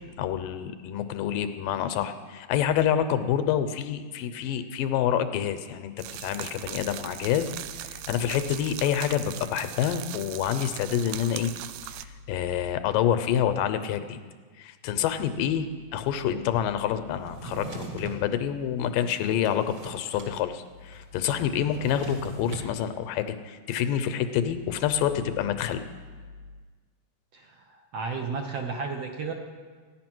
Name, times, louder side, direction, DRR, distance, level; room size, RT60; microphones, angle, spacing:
voice 1, 0.2-5.9 6.2-7.5 7.8-11.5 12.3-14.2 14.6-25.8, left 9 dB, 90° left, 10 dB, 2.4 m, -27 dB
sound 1, 6.0-12.0, right 13 dB, 80° right, 2.1 m, -39 dB
Drawer open or close, 17.2-18.2 18.8-20.3 20.6-20.7 20.9-22.7, right 3 dB, 45° right, 2.4 m, -40 dB
voice 2, 27.3-29.3, right 5 dB, 60° right, 2 dB, 1.8 m, -33 dB
15.0 x 9.9 x 6.1 m, 1.5 s
omnidirectional pair, 3.8 m